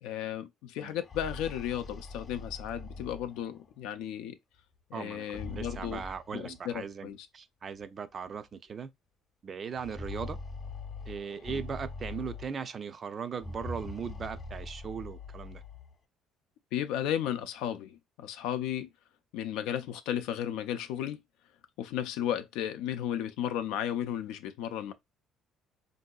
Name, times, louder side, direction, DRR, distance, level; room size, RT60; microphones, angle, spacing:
voice 1, 0.0-4.4 4.9-6.0 6.3-7.3 11.5-11.6 16.7-18.9 19.3-21.2 21.8-24.9, left 10 dB, 90° left, 0.4 m, -34 dB
sound 1, 1.0-3.8 5.1-6.8 7.8-7.9 8.3-8.4 9.7-12.8 13.3-15.9, left 3 dB, 30° left, 0.8 m, -43 dB
voice 2, 4.9-8.9 9.4-10.4 11.1-15.6, right 6 dB, 35° right, 0.4 m, -38 dB
3.8 x 2.7 x 2.2 m
cardioid pair, 115°, 0 cm